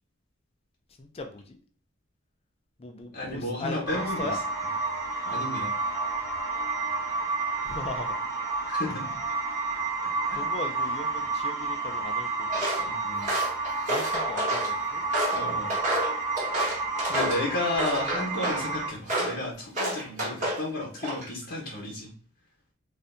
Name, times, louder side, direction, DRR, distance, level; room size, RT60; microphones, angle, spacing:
voice 1, 1.0-1.6 2.8-4.4 7.6-8.1 10.3-12.7 13.9-15.0, left 2 dB, 30° left, 4 dB, 0.5 m, -38 dB
voice 2, 3.1-4.4 5.2-5.7 8.7-9.2 10.2-10.4 12.8-13.3 15.3-15.7 17.1-22.1, left 1 dB, 60° left, -3 dB, 0.9 m, -32 dB
sound 1, 3.9-18.9, right 3 dB, 15° right, 1.2 m, -30 dB
Walk footsteps, 12.5-12.8 13.2-14.7 15.1-17.4 17.8-18.7 19.1-19.4 19.8-20.6 21.0-21.4, right 1 dB, 35° right, 1.4 m, -30 dB
4.2 x 2.5 x 2.5 m, 0.42 s
head